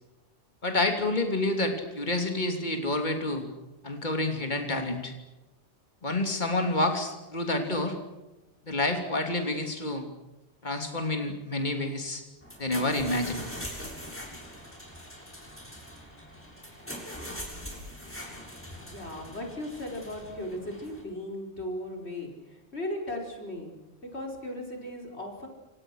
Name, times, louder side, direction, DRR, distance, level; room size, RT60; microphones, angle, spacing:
voice 1, 0.6-3.4 3.8-5.1 6.0-8.0 8.7-10.0 10.6-12.2 12.6-13.4, left 2 dB, 40° left, 4 dB, 3.2 m, -28 dB
sound 1, 12.4-21.0, equal, 10° left, 7.1 m, -42 dB
voice 2, 18.8-23.7 24.1-25.5, left 1 dB, 70° left, 1 dB, 5.4 m, -37 dB
28.0 x 27.5 x 6.5 m, 1.1 s
omnidirectional pair, 1.2 m